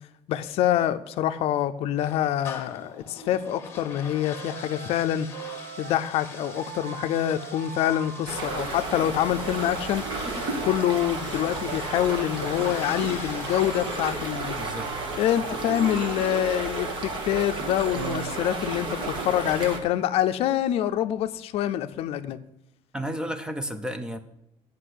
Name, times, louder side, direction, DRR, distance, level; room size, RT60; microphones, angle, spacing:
voice 1, 0.3-5.3 5.8-10.0 10.6-14.6 15.2-22.4, left 11 dB, 60° left, 10 dB, 0.5 m, -26 dB
sound 1, 2.0-17.2, left 5 dB, 25° left, 1.2 m, -45 dB
sound 2, 4.3-18.9, right 11 dB, 80° right, 0.6 m, -41 dB
sound 3, 8.3-19.8, right 2 dB, 45° right, 1.4 m, -32 dB
voice 2, 14.6-15.0 22.9-24.2, equal, 5° right, 10 dB, 0.5 m, -32 dB
8.2 x 5.3 x 7.7 m, 0.83 s
cardioid pair, 170°, 11 cm